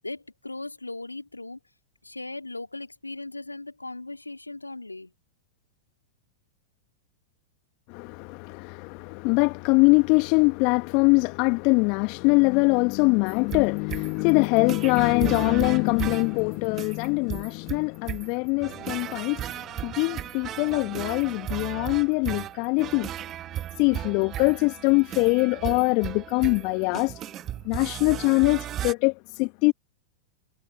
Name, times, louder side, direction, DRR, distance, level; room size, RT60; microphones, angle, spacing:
voice 1, 0.0-1.6 2.0-5.1, left 2 dB, 90° left, 3.4 m, -38 dB
voice 2, 7.9-23.1 23.8-27.1 27.6-29.7, left 32 dB, 45° left, 1.3 m, -23 dB
sound 1, 13.3-28.9, right 12 dB, 30° right, 1.5 m, -36 dB
figure-of-eight pair, 95°, 0 cm